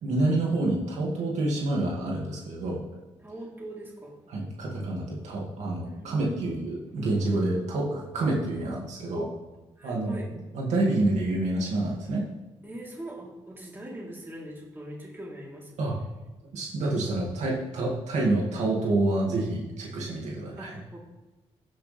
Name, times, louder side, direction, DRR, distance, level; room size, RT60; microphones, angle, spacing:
voice 1, 0.0-2.8 4.3-9.3 9.8-10.2 10.5-12.3 15.8-16.0 16.5-20.8, right 2 dB, 85° right, -3 dB, 2.4 m, -28 dB
voice 2, 3.2-4.1 5.8-6.4 9.8-10.3 12.6-15.7 20.6-21.0, right 1 dB, 20° right, -3 dB, 3.7 m, -41 dB
15.0 x 6.5 x 3.5 m, 1.1 s
cardioid pair, 60°, 12 cm